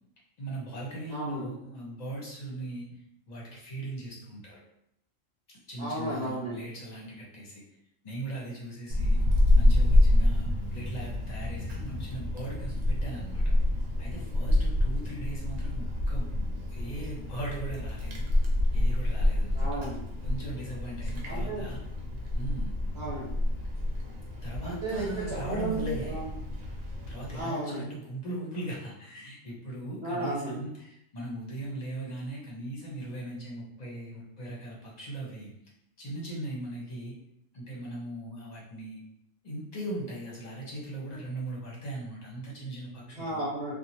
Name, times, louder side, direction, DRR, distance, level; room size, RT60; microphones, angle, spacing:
voice 1, 0.4-2.9 3.3-4.6 5.7-7.6 8.0-9.2 9.5-13.4 14.0-18.3 18.7-19.7 20.2-21.8 22.3-22.7 24.4-26.2 27.1-35.5 36.0-37.2 37.5-39.0 39.4-43.4, right 1 dB, 35° left, -4 dB, 0.8 m, -39 dB
voice 2, 1.1-1.4 5.8-6.6 19.5-20.0 21.3-21.7 22.9-23.3 24.6-26.3 27.3-27.9 30.0-30.6 43.1-43.7, right 1 dB, 55° right, -9 dB, 1.2 m, -33 dB
Wind, 8.9-27.4, left 1 dB, 80° right, 1.0 m, -27 dB
3.0 x 2.2 x 2.7 m, 0.77 s
omnidirectional pair, 1.4 m